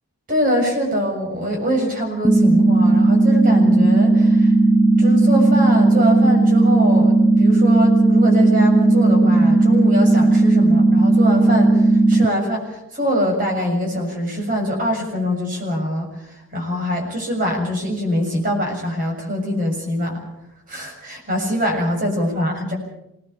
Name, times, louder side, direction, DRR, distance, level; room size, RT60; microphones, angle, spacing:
voice 1, 0.3-4.5 5.0-16.1 16.5-20.2 20.7-22.8, equal, 40° right, 1 dB, 7.0 m, -23 dB
sound 1, 2.2-12.3, right 2 dB, 5° right, 0.7 m, -15 dB
25.5 x 19.5 x 7.0 m, 0.85 s
head